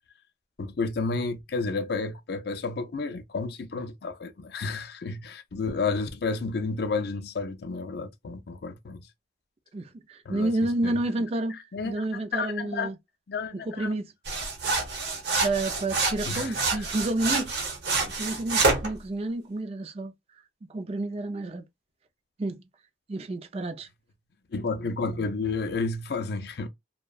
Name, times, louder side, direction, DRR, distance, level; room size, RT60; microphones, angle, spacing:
voice 1, 0.6-9.1 10.3-10.5 10.8-11.3 11.7-12.9 13.3-13.9 16.3-16.9 24.5-26.7, left 4 dB, 55° left, 0.4 m, -31 dB
voice 2, 9.7-11.6 11.8-12.9 13.5-14.0 15.4-17.5 18.0-20.1 20.7-21.7 22.4-22.6 23.1-23.9, right 2 dB, 35° right, 0.3 m, -30 dB
sound 1, 14.3-18.9, right 3 dB, 65° right, 0.8 m, -27 dB
2.6 x 2.1 x 2.3 m
head